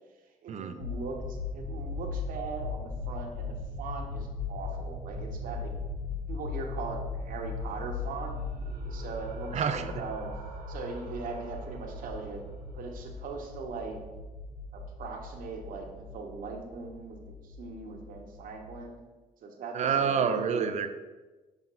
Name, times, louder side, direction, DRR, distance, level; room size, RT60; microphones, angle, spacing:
voice 1, 0.4-5.7 6.3-8.3 8.9-10.3 10.7-12.4 12.7-14.0 14.7-17.2 17.4-19.0 19.4-20.7, right 4 dB, 65° right, 1 dB, 1.2 m, -40 dB
sound 1, 0.8-18.8, left 3 dB, 70° left, 1.2 m, -38 dB
sound 2, 7.8-12.9, right 4 dB, 85° right, 1.1 m, -50 dB
voice 2, 9.5-9.8 19.7-20.9, right 7 dB, 50° right, 9 dB, 0.6 m, -27 dB
6.1 x 5.4 x 3.9 m, 1.2 s
cardioid pair, 115°, 15 cm